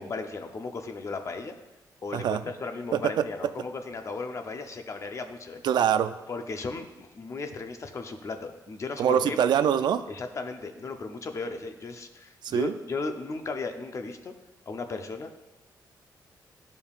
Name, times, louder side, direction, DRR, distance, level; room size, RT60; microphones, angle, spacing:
voice 1, 0.0-1.5 2.0-5.6 6.3-9.4 10.1-14.3 14.7-15.3, left 3 dB, 40° left, 6 dB, 0.7 m, -36 dB
voice 2, 2.9-3.3 5.6-6.1 9.0-10.1 12.4-12.7, right 9 dB, 80° right, 12 dB, 0.4 m, -24 dB
12.5 x 5.3 x 2.4 m, 1.1 s
cardioid pair, 115°, 8 cm